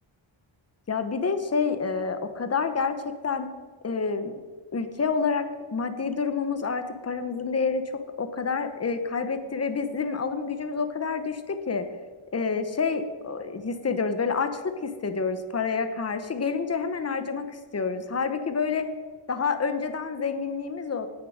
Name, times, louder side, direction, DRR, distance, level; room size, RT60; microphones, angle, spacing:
voice 1, 0.9-3.0 3.2-3.5 3.8-4.3 4.7-7.8 8.2-11.9 12.3-18.9 19.3-21.1, left 5 dB, 30° left, 9 dB, 0.9 m, -28 dB
18.0 x 6.8 x 6.3 m, 1.5 s
wide cardioid pair, 180°, 49 cm